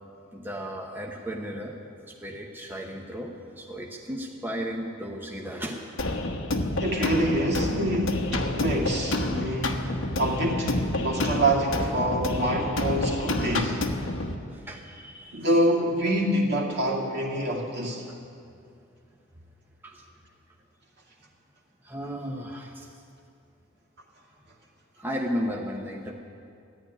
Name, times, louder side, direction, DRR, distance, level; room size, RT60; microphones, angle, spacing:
voice 1, 0.3-1.8 2.1-6.0 14.5-15.5 19.8-20.0 21.8-22.9 25.0-26.1, equal, 10° right, 0 dB, 1.0 m, -34 dB
sound 1, 6.0-14.3, left 2 dB, 75° left, 1.2 m, -29 dB
voice 2, 6.8-13.8 15.3-18.0, right 1 dB, 55° right, -1 dB, 2.4 m, -26 dB
14.5 x 10.0 x 9.8 m, 2.5 s
head